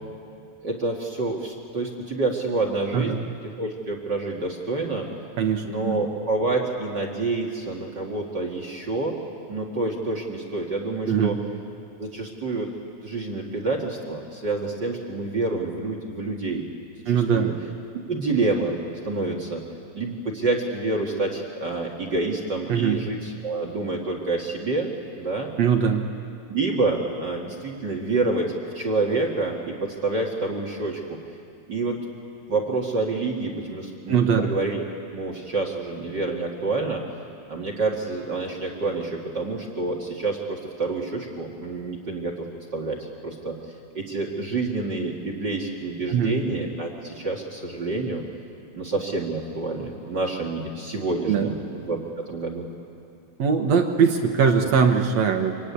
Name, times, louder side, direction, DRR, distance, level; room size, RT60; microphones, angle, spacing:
voice 1, 0.6-3.2 3.4-5.1 5.6-9.2 9.5-11.3 12.0-12.7 13.0-16.7 17.1-17.5 18.1-18.8 19.0-19.6 19.9-24.9 25.1-25.5 26.5-31.2 31.7-32.0 32.5-34.8 35.1-37.0 37.5-42.5 42.7-43.6 43.9-48.2 48.7-52.7 54.6-54.7, right 3 dB, 35° right, 2 dB, 2.3 m, -28 dB
voice 2, 2.9-3.3 5.4-6.0 11.1-11.3 17.1-17.5 22.7-23.0 25.6-26.0 34.1-34.5 46.1-46.3 51.3-51.5 53.4-55.7, right 6 dB, 60° right, 4 dB, 2.4 m, -21 dB
26.0 x 24.0 x 9.7 m, 2.4 s
omnidirectional pair, 3.7 m